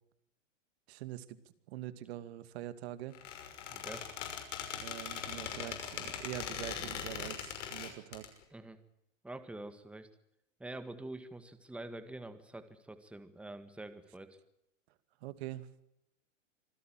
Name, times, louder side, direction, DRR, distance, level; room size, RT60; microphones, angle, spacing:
voice 1, 0.9-1.4 1.7-3.2 4.7-8.3 15.2-15.7, right 14 dB, 55° right, 12 dB, 2.3 m, -44 dB
Squeak, 3.1-8.3, left 8 dB, 70° left, 6.1 m, -41 dB
voice 2, 3.7-4.1 8.5-8.8 9.2-10.1 10.6-14.4, right 2 dB, 5° right, 9 dB, 1.8 m, -46 dB
26.5 x 16.0 x 9.0 m, 0.80 s
hypercardioid pair, 135°, 38 cm